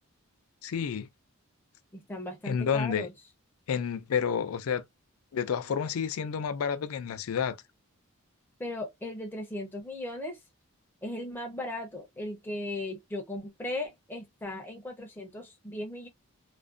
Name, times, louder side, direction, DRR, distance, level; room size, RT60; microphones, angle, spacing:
voice 1, 0.6-1.1 2.5-3.1 3.7-4.8 5.3-7.6, left 7 dB, 75° left, 0.4 m, -30 dB
voice 2, 1.9-3.1 8.6-10.4 11.0-16.1, left 1 dB, 10° left, 0.4 m, -37 dB
2.5 x 2.1 x 2.3 m
head